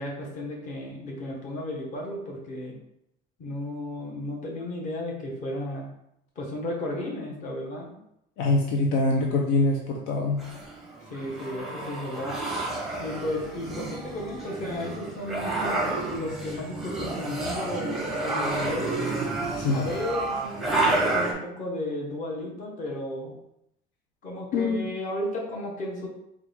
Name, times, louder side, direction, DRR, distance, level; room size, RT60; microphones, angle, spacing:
voice 1, 0.0-2.8 3.4-5.9 6.3-8.0 11.1-12.4 13.0-18.9 19.7-23.3 24.2-26.1, left 1 dB, 40° left, -1 dB, 1.1 m, -34 dB
voice 2, 8.4-10.4 19.6-19.9 24.5-24.9, left 2 dB, 70° left, 1 dB, 0.6 m, -24 dB
sound 1, 10.4-21.3, right 2 dB, ahead, 0.7 m, -30 dB
4.7 x 2.3 x 3.4 m, 0.80 s
cardioid pair, 150°, 21 cm